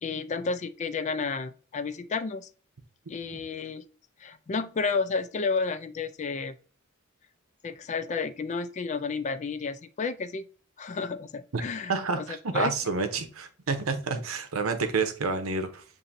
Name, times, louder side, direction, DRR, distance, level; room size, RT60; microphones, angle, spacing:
voice 1, 0.0-2.5 3.1-3.8 4.2-6.5 7.6-10.4 10.8-11.9 12.2-12.3 12.5-12.7, left 4 dB, 35° left, 0.3 m, -31 dB
voice 2, 11.9-15.8, right 4 dB, 90° right, 0.7 m, -29 dB
7.1 x 2.6 x 2.6 m
head